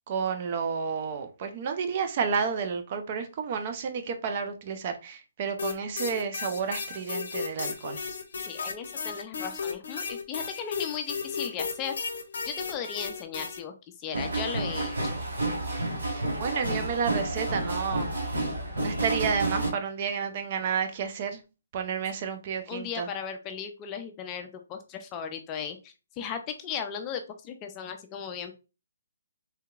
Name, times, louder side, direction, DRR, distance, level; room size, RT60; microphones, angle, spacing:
voice 1, 0.1-8.0 16.1-18.1 18.8-21.4 21.7-23.1, right 6 dB, 40° right, 0.5 m, -31 dB
sound 1, 5.6-13.6, left 5 dB, 65° left, 0.6 m, -35 dB
voice 2, 8.4-11.9 12.4-15.2 22.7-28.5, left 7 dB, 20° left, 0.4 m, -36 dB
sound 2, 14.1-19.7, right 2 dB, 80° right, 1.3 m, -30 dB
3.4 x 2.8 x 2.3 m
hypercardioid pair, 150°, 0 cm